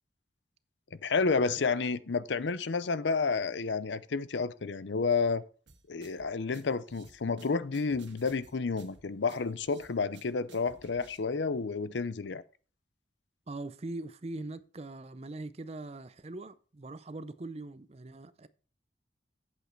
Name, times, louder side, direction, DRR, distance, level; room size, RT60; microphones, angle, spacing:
voice 1, 1.0-5.4 5.9-12.4, left 4 dB, 80° left, 0.6 m, -30 dB
sound 1, 5.7-11.2, right 3 dB, 90° right, 1.5 m, -57 dB
voice 2, 13.5-18.5, right 2 dB, 35° right, 0.5 m, -41 dB
8.3 x 8.2 x 4.5 m
head